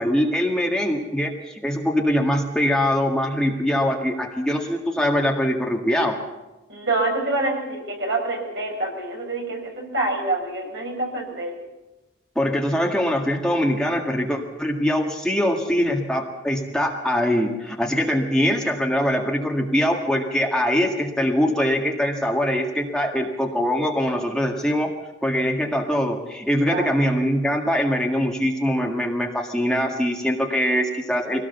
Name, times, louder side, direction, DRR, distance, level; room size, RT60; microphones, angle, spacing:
voice 1, 0.0-6.2 12.4-24.9 25.2-31.4, equal, 5° left, 0 dB, 1.8 m, -23 dB
voice 2, 6.7-11.6 26.7-26.9, right 2 dB, 60° right, 0 dB, 6.0 m, -26 dB
23.0 x 17.5 x 6.9 m, 1.0 s
head